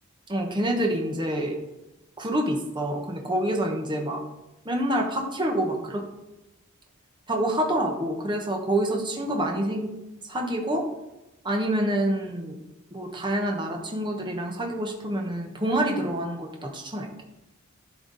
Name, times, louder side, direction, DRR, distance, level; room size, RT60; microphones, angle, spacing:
voice 1, 0.3-1.5 2.2-4.2 4.6-6.0 7.3-9.9 10.2-10.8 11.4-12.6 12.9-17.1, right 1 dB, 20° right, 2 dB, 1.2 m, -27 dB
12.0 x 4.6 x 4.1 m, 0.97 s
head